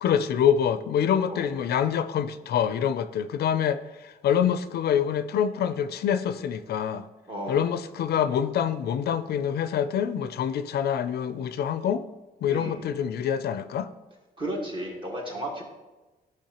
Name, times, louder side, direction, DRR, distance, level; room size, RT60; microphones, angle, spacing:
voice 1, 0.0-7.1 7.5-12.0 12.4-13.9, left 8 dB, 80° left, 12 dB, 0.4 m, -26 dB
voice 2, 7.3-7.6 12.5-12.8 14.4-15.6, right 1 dB, 30° right, -1 dB, 1.7 m, -33 dB
12.0 x 5.2 x 2.9 m, 1.1 s
cardioid pair, 130°, 16 cm